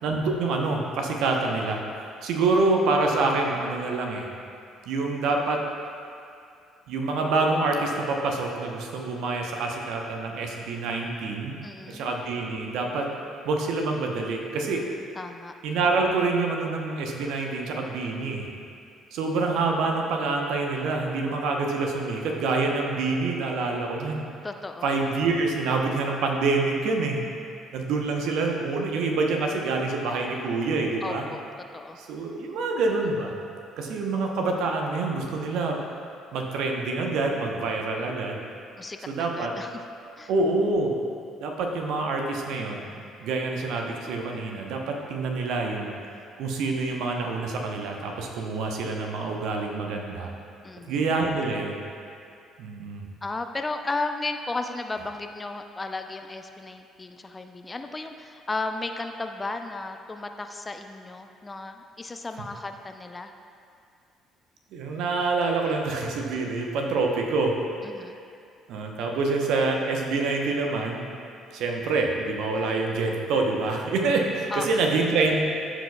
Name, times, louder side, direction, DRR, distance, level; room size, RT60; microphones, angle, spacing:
voice 1, 0.0-1.8 2.2-4.3 4.9-5.6 6.9-11.5 11.9-13.1 13.4-14.8 15.6-18.5 19.1-24.2 24.8-27.2 27.7-31.3 32.0-33.3 33.8-35.8 36.3-38.4 39.1-39.5 40.3-41.0 41.4-45.9 46.4-50.3 50.9-51.8 52.6-53.1 64.7-67.6 68.7-71.0 71.5-75.4, right 3 dB, 65° right, 1 dB, 0.8 m, -26 dB
voice 2, 11.6-12.0 15.1-15.5 24.4-24.9 31.0-31.4 31.7-32.0 38.8-39.8 40.2-40.3 50.6-51.0 53.2-63.3 67.8-68.2 74.5-74.8, left 3 dB, 25° left, 6 dB, 0.5 m, -34 dB
14.5 x 4.9 x 2.3 m, 2.4 s
figure-of-eight pair, 50°, 0 cm